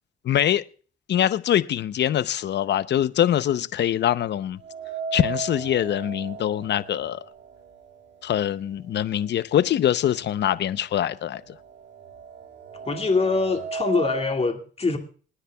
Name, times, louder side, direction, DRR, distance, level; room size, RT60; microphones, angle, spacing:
voice 1, 0.2-0.6 1.1-4.6 5.1-7.2 8.2-11.4, left 11 dB, 60° left, 0.7 m, -23 dB
sound 1, 4.6-8.7 9.0-9.1 10.1-10.2 10.6-14.4, right 5 dB, 65° right, 1.5 m, -36 dB
voice 2, 12.8-15.0, left 4 dB, 30° left, 2.1 m, -24 dB
26.0 x 9.9 x 2.3 m
cardioid pair, 90°, 20 cm